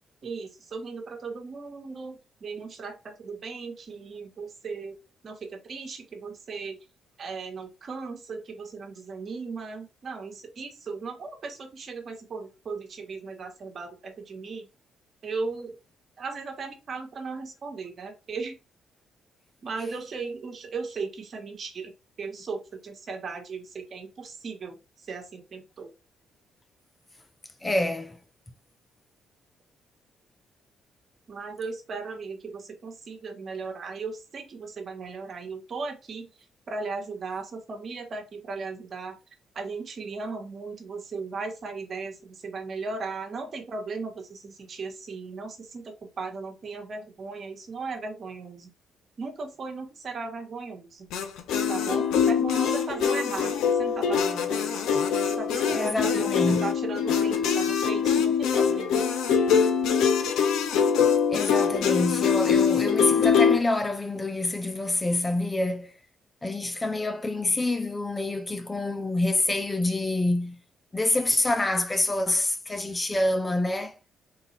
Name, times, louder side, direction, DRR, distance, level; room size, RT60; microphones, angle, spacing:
voice 1, 0.2-5.0 5.2-6.8 7.2-14.7 15.2-15.8 16.2-18.5 19.6-25.9 31.3-36.3 36.7-39.2 39.5-48.7 49.2-51.1 51.7-54.8 55.2-59.1, right 4 dB, 50° right, 1.5 m, -37 dB
voice 2, 27.6-28.2 55.7-56.7 61.3-66.0 66.4-70.6 70.9-74.0, left 2 dB, 20° left, 0.5 m, -27 dB
sound 1, 51.1-63.6, left 7 dB, 85° left, 0.7 m, -23 dB
4.1 x 2.7 x 4.2 m
cardioid pair, 90°, 0 cm